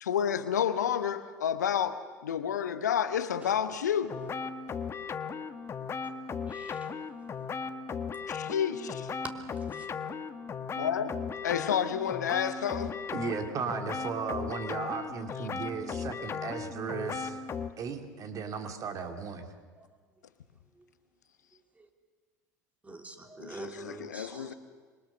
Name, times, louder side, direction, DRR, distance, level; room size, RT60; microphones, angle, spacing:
voice 1, 0.0-4.2 8.3-9.1 10.8-11.1 11.4-13.0 23.4-24.5, left 8 dB, 75° left, 1.0 m, -30 dB
sound 1, 4.1-17.7, left 5 dB, 25° left, 1.3 m, -37 dB
voice 2, 6.5-6.9 9.5-9.9 19.8-19.9 20.8-20.9 21.5-21.9 22.8-24.6, right 2 dB, 15° right, 3.4 m, -46 dB
voice 3, 13.1-17.4 17.8-19.5, right 6 dB, 35° right, 2.5 m, -36 dB
26.0 x 22.5 x 6.7 m
figure-of-eight pair, 70°, 9 cm